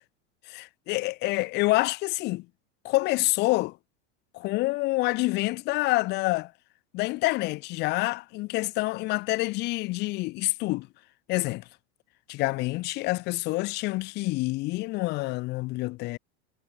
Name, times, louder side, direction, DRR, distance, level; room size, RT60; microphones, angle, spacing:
voice 1, 0.5-2.5 2.8-3.8 4.3-6.5 6.9-10.9 11.3-11.6 12.3-16.2, left 21 dB, 30° left, 0.5 m, -27 dB
supercardioid pair, 160°, 33 cm